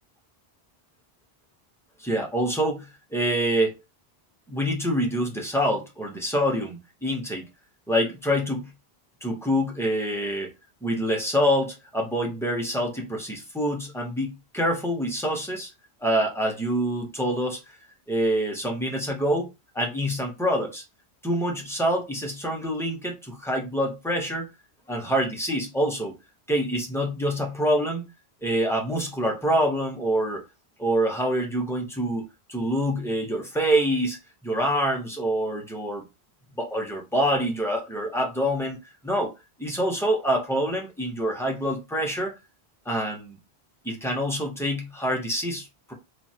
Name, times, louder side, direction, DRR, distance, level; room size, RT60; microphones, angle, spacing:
voice 1, 2.0-3.8 4.5-7.5 7.9-8.7 9.2-10.5 10.8-15.7 16.0-17.6 18.1-19.5 19.7-20.8 21.2-24.5 24.9-26.1 26.5-28.0 28.4-30.4 30.8-32.2 32.5-34.2 34.4-36.0 36.6-38.8 39.0-39.3 39.6-42.3 42.9-43.4 43.8-45.9, equal, 5° left, 0.6 m, -26 dB
3.1 x 2.4 x 2.7 m
omnidirectional pair, 1.0 m